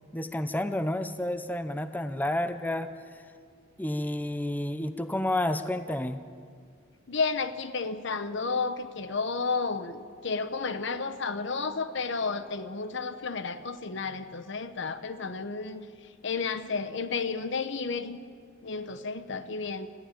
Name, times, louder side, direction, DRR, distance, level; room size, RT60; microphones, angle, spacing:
voice 1, 0.0-2.9 3.8-6.2, left 1 dB, 10° left, 10 dB, 0.6 m, -30 dB
voice 2, 7.1-15.9 16.2-18.2 18.6-19.9, left 4 dB, 65° left, 11 dB, 1.0 m, -32 dB
20.5 x 14.5 x 9.0 m, 2.1 s
head